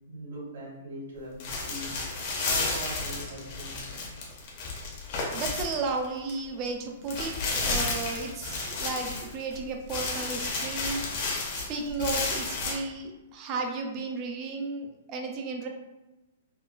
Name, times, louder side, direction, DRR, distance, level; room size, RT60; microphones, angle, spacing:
voice 1, 0.1-4.1, right 1 dB, 70° right, -4 dB, 1.3 m, -41 dB
sound 1, 1.4-6.3 6.7-6.8 7.1-9.6 9.9-12.7, left 3 dB, 35° left, 0.6 m, -32 dB
voice 2, 5.3-11.0 11.5-15.7, right 3 dB, 20° right, 3 dB, 0.3 m, -34 dB
3.7 x 2.2 x 2.3 m, 1.0 s
hypercardioid pair, 175°, 0 cm